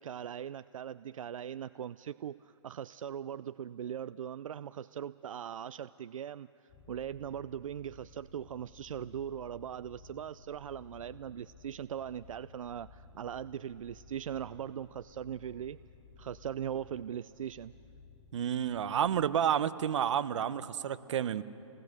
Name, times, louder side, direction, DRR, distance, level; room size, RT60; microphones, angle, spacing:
voice 1, 0.0-15.8 16.2-17.7, right 9 dB, 85° right, 15 dB, 0.4 m, -40 dB
sound 1, 6.7-19.1, left 4 dB, 30° left, 4.9 m, -56 dB
voice 2, 18.3-21.4, right 9 dB, 65° right, 13 dB, 0.9 m, -30 dB
28.0 x 19.5 x 6.6 m, 2.8 s
hypercardioid pair, 150°, 17 cm